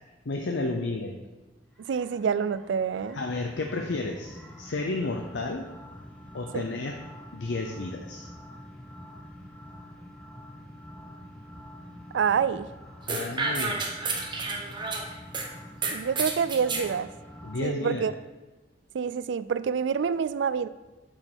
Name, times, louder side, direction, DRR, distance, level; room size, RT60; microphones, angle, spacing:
voice 1, 0.3-1.2 3.1-5.7 6.3-7.0 7.3-8.3 13.1-13.8 17.4-18.1, left 2 dB, 80° left, 2 dB, 0.7 m, -32 dB
sound 1, 1.8-17.7, left 1 dB, 5° left, 1.3 m, -46 dB
voice 2, 1.9-3.2 6.5-6.6 12.1-12.7 15.9-17.1 17.6-18.1 18.9-20.7, right 6 dB, 80° right, 15 dB, 0.4 m, -27 dB
sound 2, 13.1-15.5 15.8-16.9, right 3 dB, 25° right, 1.0 m, -30 dB
7.4 x 4.8 x 6.2 m, 1.1 s
head